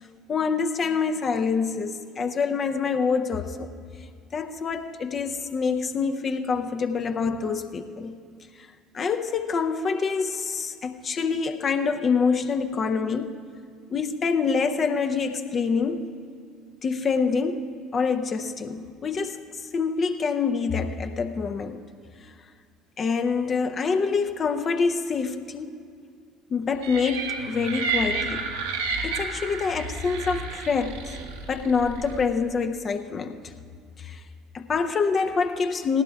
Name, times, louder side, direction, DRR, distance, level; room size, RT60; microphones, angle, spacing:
voice 1, 0.3-3.7 4.3-8.2 8.6-8.7 8.9-13.4 13.9-16.1 16.8-17.7 17.9-19.4 19.7-21.8 23.0-25.8 26.5-28.5 29.0-31.2 31.5-33.5 34.0-34.2 34.5-36.0, left 5 dB, 35° left, 7 dB, 0.6 m, -26 dB
sound 1, 26.8-32.3, right 4 dB, 70° right, 1.2 m, -31 dB
19.0 x 16.0 x 2.3 m, 2.2 s
figure-of-eight pair, 60°, 0 cm